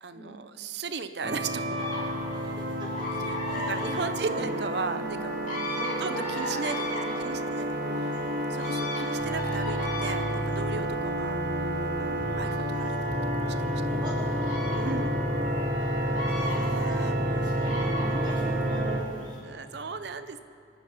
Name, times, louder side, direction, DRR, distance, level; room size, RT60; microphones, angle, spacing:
voice 1, 0.0-2.1 3.2-5.5 5.8-7.7 8.5-11.4 12.0-13.0 13.5-13.8 14.7-15.2 16.2-17.2 19.4-20.4, right 4 dB, 65° right, 10 dB, 0.6 m, -36 dB
sound 1, 1.2-19.0, right 1 dB, 50° right, 1.4 m, -29 dB
sound 2, 1.8-19.4, left 2 dB, 40° left, 3.0 m, -38 dB
voice 2, 2.3-3.1 3.4-3.9 4.2-4.6 4.9-5.3 5.7-8.3 13.9-14.4 14.7-14.9 15.8-19.6, equal, 25° right, -4 dB, 4.2 m, -42 dB
25.5 x 9.1 x 5.6 m, 2.5 s
head